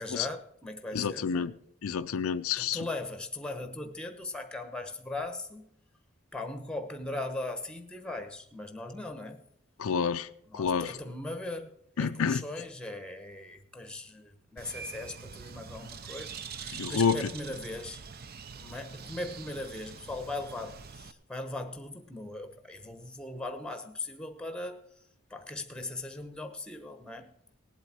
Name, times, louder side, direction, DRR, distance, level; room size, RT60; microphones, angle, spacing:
voice 1, 0.0-1.5 2.6-5.6 6.3-9.4 10.5-18.0 18.5-27.3, left 2 dB, 5° left, 0.9 m, -39 dB
voice 2, 0.9-1.5 1.8-2.8 9.8-10.3 10.5-11.0 12.0-12.4 16.7-17.3, left 6 dB, 75° left, 0.5 m, -28 dB
Bird, 14.6-21.1, right 6 dB, 45° right, 0.6 m, -44 dB
19.0 x 8.1 x 4.2 m
head